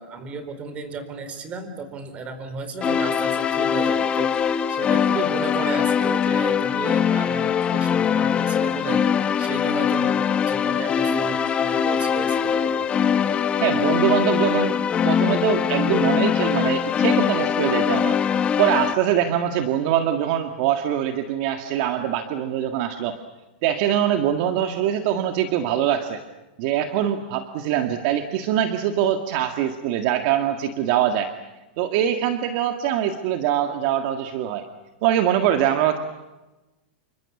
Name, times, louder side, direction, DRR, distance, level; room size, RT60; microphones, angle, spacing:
voice 1, 0.0-12.9, right 4 dB, 25° right, 10 dB, 4.3 m, -34 dB
sound 1, 2.8-18.9, left 8 dB, 20° left, 0.9 m, -22 dB
voice 2, 13.6-18.2 18.6-23.2 23.6-26.2 26.6-31.3 31.8-34.6 35.0-36.0, right 10 dB, 50° right, 6 dB, 1.9 m, -23 dB
29.5 x 25.0 x 7.2 m, 1.1 s
supercardioid pair, 145°, 5 cm